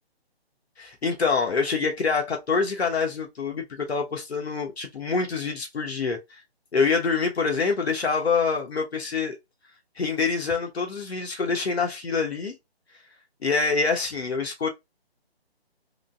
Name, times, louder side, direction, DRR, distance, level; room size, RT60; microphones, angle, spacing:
voice 1, 0.8-6.4 6.7-9.4 10.0-12.5 13.4-14.7, left 4 dB, 75° left, 1.1 m, -26 dB
3.7 x 2.3 x 2.3 m
hypercardioid pair, 160°, 32 cm